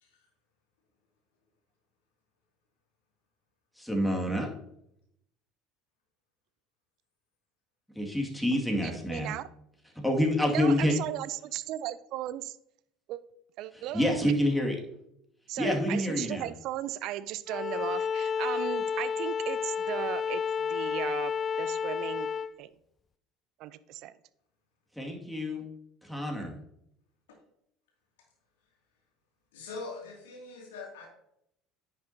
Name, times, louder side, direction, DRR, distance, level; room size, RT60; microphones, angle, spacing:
voice 1, 3.8-4.5 8.0-9.3 10.0-10.9 13.9-14.7 15.6-16.5 25.0-25.6 26.0-26.6, left 1 dB, ahead, 2.2 m, -27 dB
voice 2, 8.8-9.5 10.5-12.6 13.1-13.2 13.6-14.3 15.5-22.3 22.6-22.7 23.6-24.1, right 13 dB, 60° right, 0.4 m, -36 dB
Bowed string instrument, 17.5-22.5, left 7 dB, 35° left, 0.4 m, -31 dB
voice 3, 29.5-31.1, left 3 dB, 80° left, 2.5 m, -42 dB
10.0 x 6.1 x 2.8 m
hypercardioid pair, 70°, 0 cm